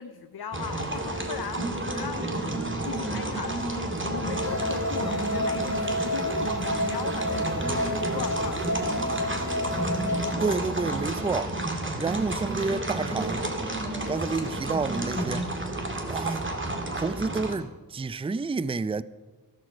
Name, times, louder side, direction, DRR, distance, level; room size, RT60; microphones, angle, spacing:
voice 1, 0.0-10.2 16.2-16.9, left 7 dB, 75° left, 0.7 m, -39 dB
sound 1, 0.5-17.5, right 1 dB, 30° right, 2.1 m, -30 dB
sound 2, 4.3-10.3, left 1 dB, 45° left, 1.3 m, -31 dB
voice 2, 10.4-11.6 12.0-13.5 14.1-15.5 16.0-16.5 17.0-19.0, right 4 dB, 15° right, 0.4 m, -29 dB
13.0 x 13.0 x 5.2 m
cardioid pair, 50°, 38 cm